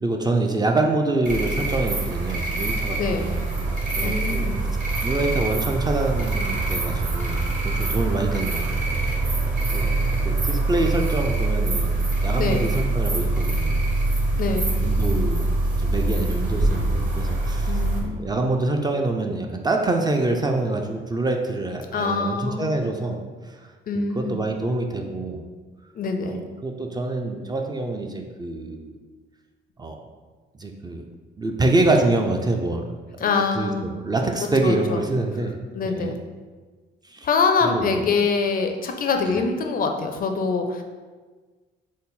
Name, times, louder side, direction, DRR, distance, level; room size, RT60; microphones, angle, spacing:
voice 1, 0.0-4.5 5.0-8.6 9.7-10.0 10.2-13.9 14.8-15.4 15.8-23.7 24.2-25.4 26.3-28.9 29.8-30.0 30.6-31.0 31.4-32.8 33.2-35.6 35.9-36.1 37.0-37.3 37.6-38.1, right 2 dB, 20° right, 3 dB, 0.3 m, -26 dB
sound 1, 1.3-18.0, right 2 dB, 40° right, 0.9 m, -24 dB
voice 2, 3.0-3.4 4.0-4.6 12.4-12.7 14.4-14.8 17.7-18.3 21.9-22.9 23.9-24.4 25.9-26.4 33.2-33.9 34.6-35.0 35.7-36.2 37.2-40.8, left 4 dB, 45° left, 5 dB, 0.4 m, -24 dB
4.0 x 2.1 x 3.7 m, 1.4 s
cardioid pair, 90°, 20 cm